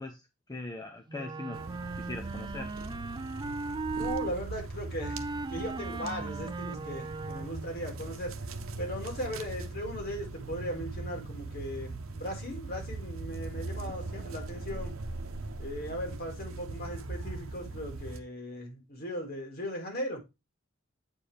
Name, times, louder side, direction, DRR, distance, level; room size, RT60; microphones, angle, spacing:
voice 1, 0.0-1.6 1.9-2.7, left 2 dB, 20° left, 0.7 m, -40 dB
Wind instrument woodwind instrument, 1.1-4.3 5.0-7.7, right 3 dB, 20° right, 0.4 m, -37 dB
sound 1, 1.5-18.2, right 3 dB, 90° right, 0.8 m, -40 dB
voice 2, 4.0-5.2 5.5-8.4 8.8-14.9 15.6-20.2, equal, 50° left, 2.3 m, -38 dB
8.5 x 4.5 x 3.3 m
head